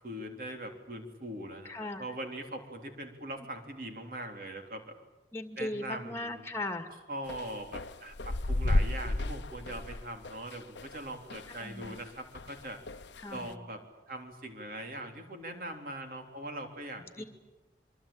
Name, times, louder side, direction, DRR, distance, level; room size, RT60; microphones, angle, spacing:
voice 1, 0.0-4.9 5.6-6.5 7.1-12.8 13.3-17.3, right 1 dB, 50° right, 4 dB, 3.6 m, -41 dB
voice 2, 1.6-2.0 5.3-6.9 11.6-12.0 13.2-13.6 17.2-17.3, left 2 dB, 15° left, 6 dB, 2.2 m, -38 dB
sound 1, 7.3-12.1 12.3-13.5, left 1 dB, 85° left, 1.0 m, -33 dB
26.0 x 24.0 x 8.8 m, 1.1 s
head